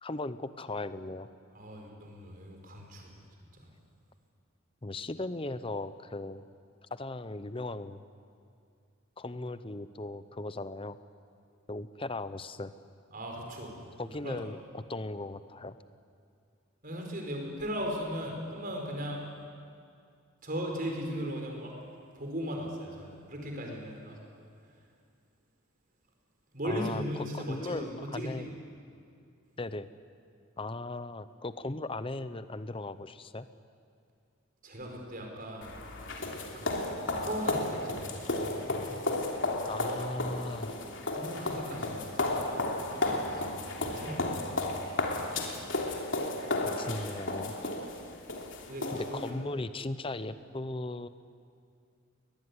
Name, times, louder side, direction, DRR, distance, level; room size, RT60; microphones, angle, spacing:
voice 1, 0.0-1.3 4.8-6.4 6.9-8.0 9.2-11.0 11.7-12.7 14.0-15.8 26.6-28.5 29.6-29.9 30.6-33.5 39.7-40.7 46.6-47.6 48.9-51.1, left 2 dB, 25° left, 13 dB, 0.7 m, -37 dB
voice 2, 1.5-3.1 13.1-13.7 14.2-14.4 16.8-19.2 20.4-21.7 22.2-24.1 26.5-28.5 34.6-35.7 36.5-36.9 37.2-38.6 41.2-42.6 43.0-43.4 43.8-44.5 48.7-49.3, equal, 40° right, 1 dB, 4.9 m, -37 dB
sound 1, 35.6-49.3, left 2 dB, 60° left, 3.1 m, -33 dB
21.5 x 21.0 x 9.7 m, 2.3 s
head